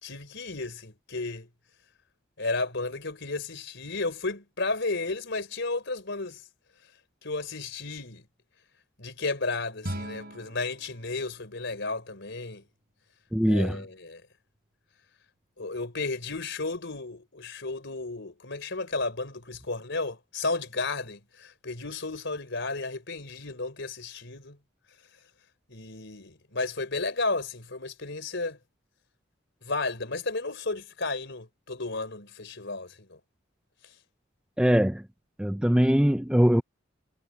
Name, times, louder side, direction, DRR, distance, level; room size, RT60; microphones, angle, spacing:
voice 1, 0.0-1.5 2.4-6.4 7.2-8.2 9.0-12.6 13.5-14.2 15.6-24.6 25.7-28.6 29.6-33.2, left 3 dB, 60° left, 4.5 m, -33 dB
sound 1, 9.8-12.8, right 1 dB, 50° right, 5.9 m, -41 dB
voice 2, 13.3-13.8 34.6-35.0 35.4-36.6, equal, 5° right, 0.6 m, -22 dB
head